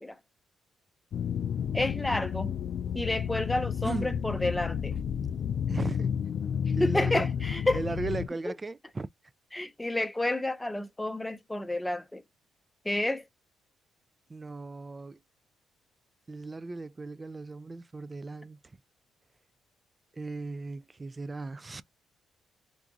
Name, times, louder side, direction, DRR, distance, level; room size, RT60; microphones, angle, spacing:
sound 1, 1.1-8.3, left 8 dB, 60° left, 0.3 m, -31 dB
voice 1, 1.7-2.6 2.9-4.9 6.8-7.8 8.5-8.6 9.5-12.2 12.8-13.2, left 1 dB, 10° left, 0.6 m, -30 dB
voice 2, 3.8-4.2 5.7-6.1 6.8-7.3 7.7-9.1 14.3-15.2 16.3-18.6 20.1-21.8, right 3 dB, 25° right, 0.3 m, -36 dB
4.6 x 2.5 x 2.3 m
cardioid pair, 85°, 0 cm